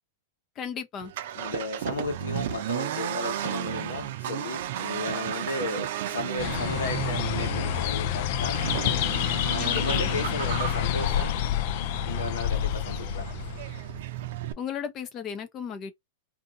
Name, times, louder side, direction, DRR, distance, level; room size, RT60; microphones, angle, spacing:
voice 1, 0.6-1.1 9.6-10.1 14.6-15.9, left 7 dB, 35° left, 0.7 m, -35 dB
Accelerating revving vroom, 1.0-14.5, right 11 dB, 65° right, 0.5 m, -34 dB
voice 2, 1.3-8.8 9.4-11.3 12.1-13.3, left 3 dB, 90° left, 1.2 m, -34 dB
sound 1, 6.4-14.0, left 12 dB, 60° left, 0.3 m, -28 dB
2.7 x 2.5 x 2.6 m
hypercardioid pair, 120°, 0 cm